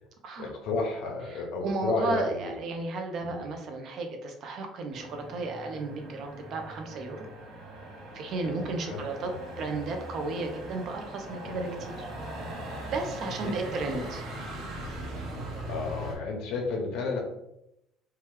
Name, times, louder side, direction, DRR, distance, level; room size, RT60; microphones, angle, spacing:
voice 1, 0.4-2.5 3.2-3.5 8.4-9.3 11.4-11.7 13.4-14.1 15.7-17.2, left 3 dB, 70° left, 1 dB, 0.8 m, -33 dB
voice 2, 1.3-7.3 8.1-12.1 12.9-14.2, right 3 dB, 50° right, 4 dB, 0.5 m, -34 dB
Motor vehicle (road), 4.9-16.2, right 1 dB, 65° right, 0.9 m, -40 dB
3.0 x 2.2 x 3.1 m, 0.83 s
cardioid pair, 140°, 0 cm